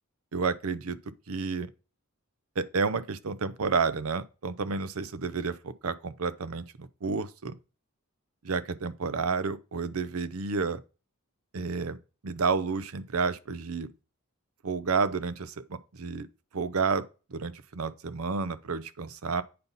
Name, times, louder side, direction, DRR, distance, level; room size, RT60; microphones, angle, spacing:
voice 1, 0.3-1.0 1.3-1.7 2.6-7.6 8.4-10.8 11.5-12.0 12.2-13.9 14.6-16.3 16.5-19.4, right 4 dB, 75° right, 0.6 m, -30 dB
8.7 x 5.5 x 4.0 m
head